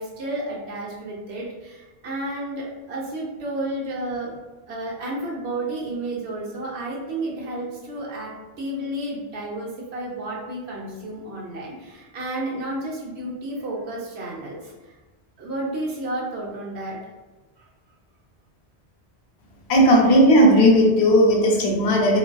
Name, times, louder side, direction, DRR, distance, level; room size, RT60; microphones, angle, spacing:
voice 1, 0.0-4.4 4.7-14.9 15.4-17.0 17.6-17.7, right 1 dB, 85° right, -4 dB, 1.0 m, -31 dB
voice 2, 19.7-22.2, equal, 80° left, 0 dB, 0.8 m, -15 dB
2.6 x 2.5 x 2.2 m, 1.2 s
omnidirectional pair, 1.1 m